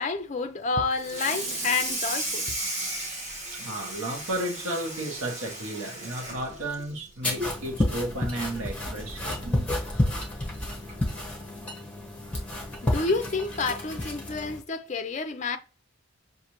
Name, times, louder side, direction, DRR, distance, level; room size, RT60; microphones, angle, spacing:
voice 1, 0.0-2.5 12.8-15.6, left 4 dB, 35° left, 0.4 m, -29 dB
Water tap faucet / Sink (filling or washing), 0.9-7.6 8.0-8.2 8.6-8.7 9.1-9.2 10.3-10.4 10.9-11.1, right 1 dB, 35° right, 1.2 m, -34 dB
voice 2, 3.5-9.7 12.2-12.9, right 1 dB, 80° right, 1.0 m, -34 dB
sound 1, 7.2-14.6, left 1 dB, 5° left, 1.1 m, -30 dB
6.2 x 2.6 x 2.9 m
head